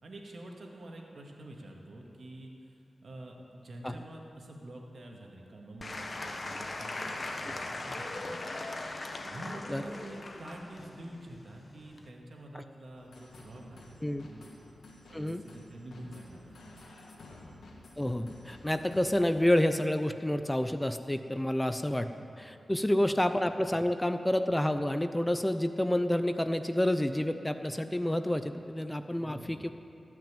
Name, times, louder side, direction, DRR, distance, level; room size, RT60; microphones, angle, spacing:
voice 1, 0.0-8.5 9.2-14.0 14.3-14.5 15.1-16.8 22.2-22.3 29.2-29.6, right 1 dB, 65° right, 0 dB, 2.2 m, -47 dB
Applause / Crowd, 5.8-12.1, left 2 dB, 50° left, 1.2 m, -39 dB
sound 1, 12.9-19.2, left 2 dB, 85° left, 1.7 m, -52 dB
voice 2, 18.0-22.1 22.4-29.7, left 1 dB, 15° left, 9 dB, 0.6 m, -29 dB
18.0 x 6.1 x 9.0 m, 2.6 s
cardioid pair, 50°, 0 cm